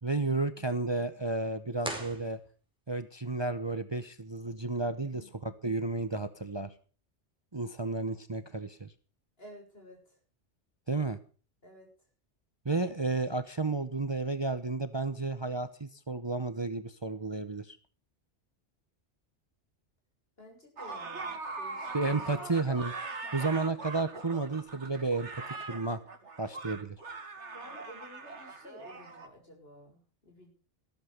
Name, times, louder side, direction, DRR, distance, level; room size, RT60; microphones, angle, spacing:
voice 1, 0.0-2.4 2.9-6.7 7.5-8.9 10.9-11.2 12.6-17.8 21.9-22.9 23.3-25.4 25.7-26.0 26.4-27.0, right 3 dB, 25° right, 11 dB, 0.9 m, -32 dB
sound 1, 1.8-3.0, right 1 dB, 5° right, 4.9 m, -40 dB
voice 2, 9.4-10.2 11.6-11.9 20.4-22.6 27.5-30.5, equal, 55° left, 1 dB, 7.1 m, -51 dB
sound 2, 20.8-29.3, right 3 dB, 80° right, 2.3 m, -41 dB
14.5 x 14.0 x 5.2 m, 0.39 s
omnidirectional pair, 1.2 m